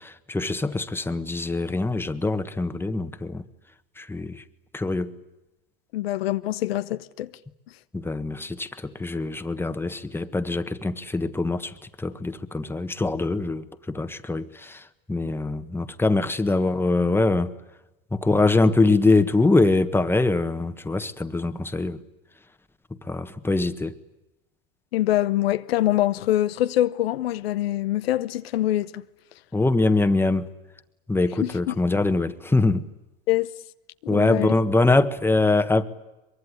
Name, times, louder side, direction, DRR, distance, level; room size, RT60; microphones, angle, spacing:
voice 1, 0.0-3.4 4.0-4.4 4.7-5.2 7.9-17.5 18.1-22.0 23.0-23.9 29.5-30.5 31.1-32.9 34.1-35.8, left 2 dB, 10° left, 1.5 m, -23 dB
voice 2, 5.9-7.3 24.9-29.0 31.4-31.7 33.3-33.5 34.1-34.6, left 14 dB, 85° left, 0.9 m, -24 dB
23.5 x 22.5 x 10.0 m
hypercardioid pair, 100°, 29 cm